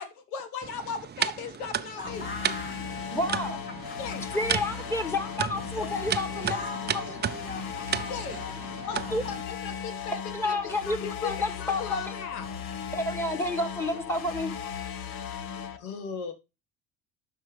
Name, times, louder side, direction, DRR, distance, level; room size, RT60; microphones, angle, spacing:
voice 1, 0.0-2.3 4.0-4.3 7.1-7.3 8.1-8.4 8.8-12.6 15.8-16.3, left 6 dB, 75° left, 1.6 m, -37 dB
sound 1, 0.6-9.4, right 8 dB, 25° right, 0.6 m, -34 dB
sound 2, 2.0-15.8, left 7 dB, 50° left, 1.3 m, -37 dB
voice 2, 2.0-3.2 3.9-4.0 5.7-9.2, left 2 dB, 25° left, 3.5 m, -41 dB
voice 3, 3.1-3.6 4.3-6.6 6.9-7.0 9.1-9.2 10.3-12.0 12.9-14.5, left 2 dB, 5° left, 2.1 m, -30 dB
12.0 x 4.6 x 3.3 m
hypercardioid pair, 65°, 44 cm